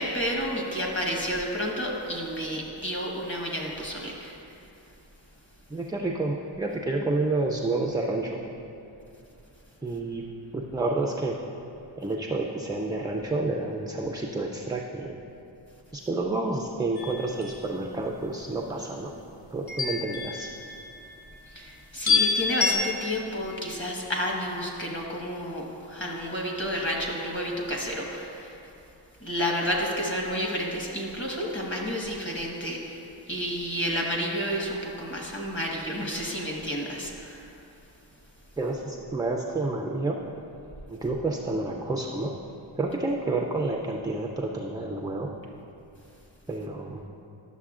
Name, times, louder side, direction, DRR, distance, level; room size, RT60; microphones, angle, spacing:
voice 1, 0.0-4.4 21.5-28.7 29.2-37.5, equal, 25° left, -1 dB, 1.2 m, -31 dB
voice 2, 5.7-8.4 9.8-10.2 10.5-11.4 12.0-15.2 15.9-19.1 19.5-20.5 38.6-40.2 40.9-42.3 42.8-45.3 46.5-47.0, right 2 dB, 10° right, 0 dB, 0.3 m, -29 dB
sound 1, 17.0-17.5 19.7-21.1 22.1-22.7, left 4 dB, 50° left, 1.1 m, -26 dB
11.0 x 6.6 x 2.4 m, 2.7 s
wide cardioid pair, 100°, 47 cm